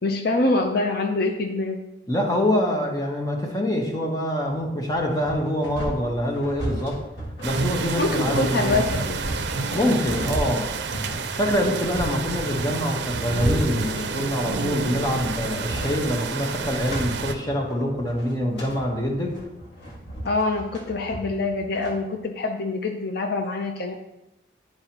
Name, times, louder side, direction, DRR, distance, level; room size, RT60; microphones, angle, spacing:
voice 1, 0.0-1.8 8.0-9.2 20.2-23.9, left 2 dB, 55° left, 4 dB, 0.5 m, -25 dB
voice 2, 2.1-7.0 7.4-8.8 9.7-10.7 11.4-19.3, equal, 20° left, 0 dB, 1.1 m, -25 dB
sound 1, 4.4-21.9, equal, 80° left, 1.9 m, -34 dB
sound 2, 7.4-17.3, right 4 dB, 70° right, 0.6 m, -29 dB
10.5 x 4.8 x 2.9 m, 0.95 s
head